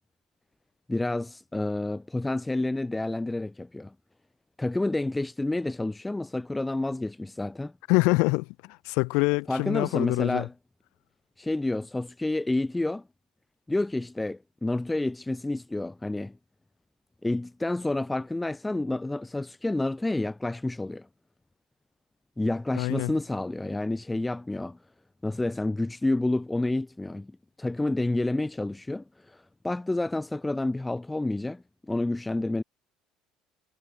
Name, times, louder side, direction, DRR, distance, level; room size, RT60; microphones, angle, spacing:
voice 1, 0.9-3.9 4.6-7.7 9.5-10.5 11.4-13.0 13.7-16.3 17.2-21.1 22.4-24.8 25.2-27.3 27.6-32.6, left 2 dB, 10° left, 3.3 m, -29 dB
voice 2, 7.9-10.5 22.8-23.1, left 29 dB, 75° left, 1.9 m, -25 dB
hypercardioid pair, 70°, 0 cm